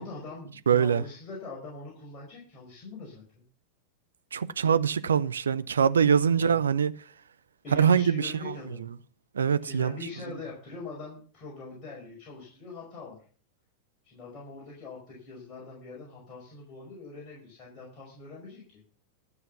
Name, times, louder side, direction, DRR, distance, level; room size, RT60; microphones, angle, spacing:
voice 1, 0.0-3.4 6.4-6.6 7.6-8.9 9.6-13.2 14.0-18.9, left 3 dB, 30° left, 5.3 m, -43 dB
voice 2, 0.7-1.0 4.3-6.9 7.7-8.9 9.3-9.9, right 7 dB, 70° right, 0.6 m, -24 dB
13.0 x 6.6 x 6.9 m
figure-of-eight pair, 90°, 0 cm